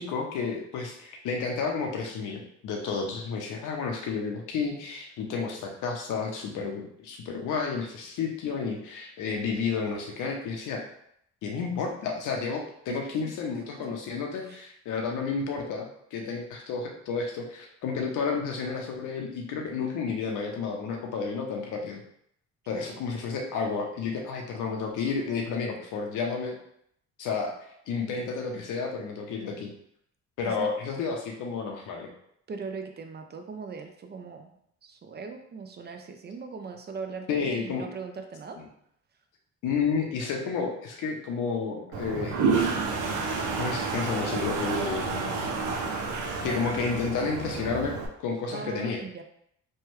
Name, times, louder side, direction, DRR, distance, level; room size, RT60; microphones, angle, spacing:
voice 1, 0.0-10.8 11.4-22.0 22.7-26.5 27.2-27.5 27.9-29.7 30.4-32.1 37.3-37.9 38.6-38.7 39.6-42.4 43.6-45.5 46.4-47.9 48.2-49.0, left 5 dB, 85° left, 2 dB, 0.7 m, -31 dB
voice 2, 32.5-34.5 34.8-38.6 48.5-49.2, right 5 dB, 35° right, 6 dB, 0.4 m, -39 dB
Toilet flush, 41.9-48.1, right 4 dB, 85° right, 0.6 m, -29 dB
3.2 x 2.2 x 3.1 m, 0.71 s
cardioid pair, 90°, 30 cm